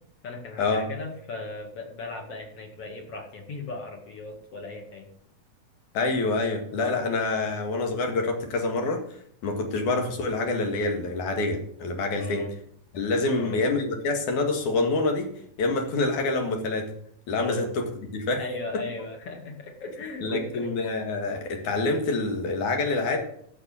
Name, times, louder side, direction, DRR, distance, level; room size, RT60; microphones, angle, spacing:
voice 1, 0.2-5.1 12.2-12.5 13.3-13.6 17.4-17.7 18.4-20.7, left 3 dB, 50° left, 1 dB, 2.9 m, -37 dB
voice 2, 5.9-9.0 9.4-12.5 12.9-15.3 15.6-16.9 17.3-18.4 20.2-23.2, left 3 dB, 75° left, 3 dB, 3.3 m, -26 dB
11.5 x 7.4 x 6.9 m, 0.65 s
omnidirectional pair, 3.6 m